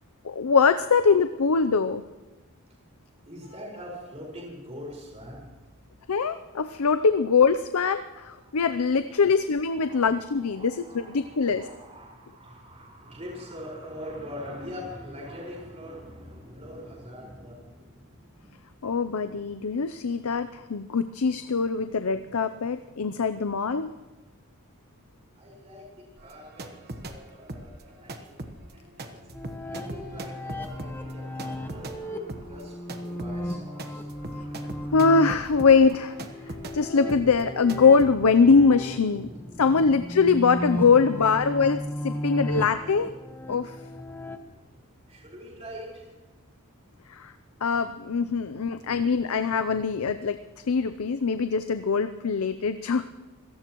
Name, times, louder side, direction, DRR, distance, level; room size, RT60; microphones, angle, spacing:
voice 1, 0.2-2.0 6.1-11.7 18.8-23.9 34.9-36.1 36.7-39.3 39.6-43.1 43.5-43.7 47.1-47.3 47.6-50.4 50.7-53.0, left 5 dB, 80° left, 10 dB, 0.6 m, -22 dB
voice 2, 3.2-5.4 8.4-8.8 9.1-9.2 9.7-18.6 21.8-22.4 25.4-25.8 26.2-27.7 28.0-28.3 29.0-29.3 29.7-35.3 36.3-37.4 37.6-38.6 39.1-40.4 40.7-42.9 43.9-46.4 47.6-47.7 48.5-49.2 49.7-49.8 50.4-50.5, equal, 30° right, -3 dB, 5.0 m, -44 dB
sound 1, 26.2-27.2 27.5-36.8 37.1-37.4 37.7-38.1, right 2 dB, 45° right, 1.2 m, -40 dB
sound 2, 29.3-44.4, left 1 dB, 10° left, 1.1 m, -35 dB
25.5 x 18.0 x 3.1 m, 1.2 s
head